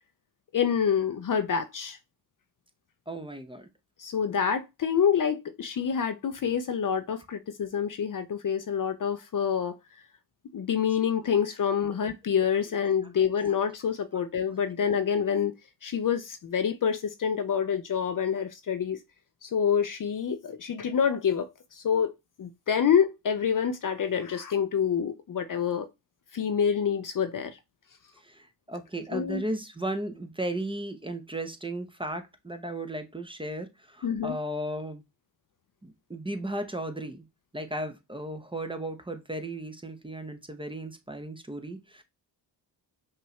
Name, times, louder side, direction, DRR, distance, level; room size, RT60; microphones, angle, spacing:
voice 1, 0.5-2.0 4.0-9.7 10.5-15.5 15.8-19.0 19.4-22.1 22.4-25.9 26.3-27.6 29.1-29.4 34.0-34.3, left 7 dB, 45° left, 0.6 m, -27 dB
voice 2, 3.1-3.7 12.6-12.7 14.1-14.2 28.1-35.0 35.8-37.3 37.5-42.0, right 1 dB, 10° right, 0.8 m, -35 dB
5.4 x 2.5 x 3.2 m
supercardioid pair, 50°, 46 cm